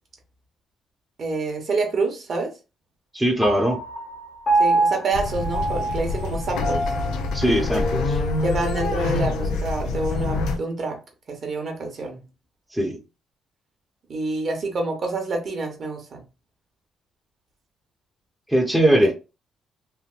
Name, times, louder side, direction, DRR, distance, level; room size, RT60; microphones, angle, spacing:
voice 1, 1.2-2.5 4.6-6.9 8.4-11.0 11.3-12.2 14.1-16.2 19.0-19.1, right 3 dB, 50° right, 1.1 m, -27 dB
voice 2, 3.1-3.8 7.3-8.2 12.7-13.0 18.5-19.1, right 1 dB, 5° right, 0.8 m, -20 dB
Piano, 3.4-10.1, right 2 dB, 50° left, 1.3 m, -27 dB
sound 1, 5.1-10.6, left 3 dB, 90° left, 0.5 m, -26 dB
3.3 x 2.6 x 2.4 m
cardioid pair, 90°, 0 cm